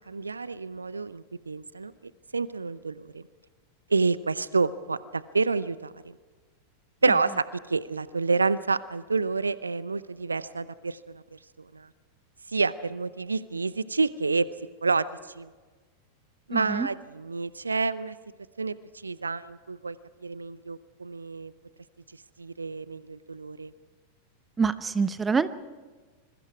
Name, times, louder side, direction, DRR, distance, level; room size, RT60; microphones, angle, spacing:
voice 1, 0.1-1.9 2.3-3.2 3.9-5.9 7.0-11.4 11.7-11.9 12.5-14.5 14.8-15.1 15.4-15.5 16.5-18.2 18.6-18.7 19.0-20.0 20.2-21.5 22.4-23.7, right 4 dB, 75° right, 18 dB, 0.6 m, -28 dB
voice 2, 16.5-16.9 24.6-25.5, right 5 dB, 15° right, 14 dB, 0.9 m, -25 dB
26.0 x 22.5 x 4.8 m, 1.4 s
figure-of-eight pair, 90°, 0 cm